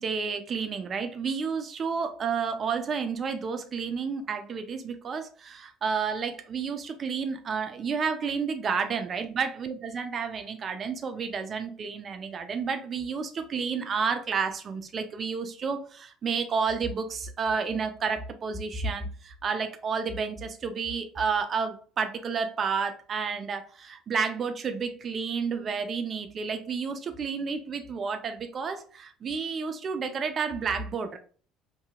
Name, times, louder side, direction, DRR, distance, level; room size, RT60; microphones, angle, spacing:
voice 1, 0.0-31.2, right 5 dB, 40° right, 0.5 m, -31 dB
2.7 x 2.7 x 2.4 m
hypercardioid pair, 65°, 0 cm